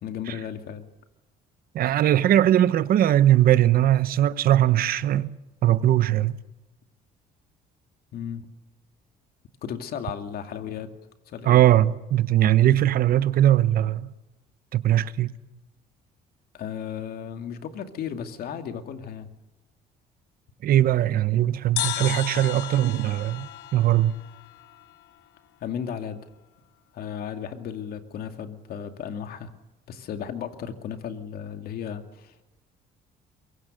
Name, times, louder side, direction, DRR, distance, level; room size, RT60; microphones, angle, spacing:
voice 1, 0.0-0.8 8.1-8.5 9.6-10.9 11.3-11.6 16.5-19.3 25.6-26.2 26.9-29.5 29.9-32.3, left 8 dB, 65° left, 2.5 m, -34 dB
voice 2, 1.7-5.3 5.6-6.3 11.4-14.1 14.7-15.3 20.6-24.2, right 12 dB, 60° right, 1.1 m, -20 dB
sound 1, 21.8-25.3, left 13 dB, 85° left, 1.6 m, -34 dB
23.5 x 23.0 x 6.7 m
cardioid pair, 110°, 17 cm